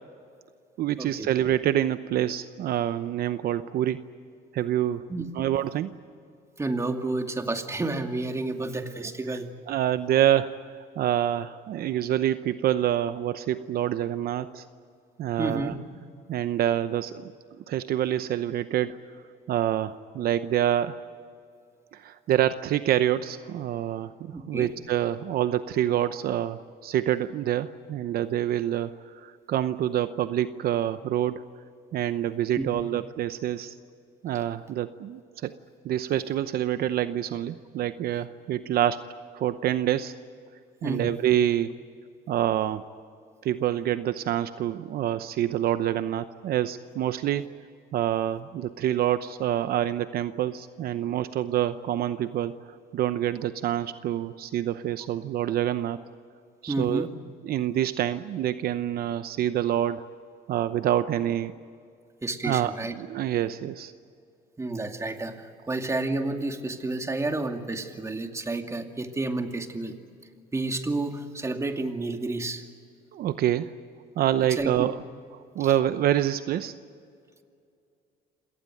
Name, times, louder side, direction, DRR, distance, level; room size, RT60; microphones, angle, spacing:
voice 1, 0.8-4.0 4.5-5.1 5.3-5.9 9.3-9.4 9.7-14.6 15.2-15.7 16.3-17.3 17.7-19.0 19.5-21.0 21.9-31.4 31.9-33.7 34.2-35.5 35.8-39.1 39.3-40.1 40.8-41.7 42.3-42.8 43.4-47.5 47.9-52.5 52.9-56.0 56.6-57.1 57.4-60.1 60.5-61.5 62.4-63.9 73.1-73.7 74.2-75.0 75.3-76.7, right 11 dB, 65° right, 12 dB, 0.8 m, -27 dB
voice 2, 6.6-9.5 15.4-15.8 24.3-24.7 32.6-32.8 40.8-41.2 56.7-57.1 62.2-62.9 64.6-69.9 70.5-72.6 74.5-74.9 75.6-75.7, right 2 dB, 15° right, 5 dB, 2.3 m, -30 dB
27.0 x 18.5 x 9.2 m, 2.4 s
cardioid pair, 110°, 17 cm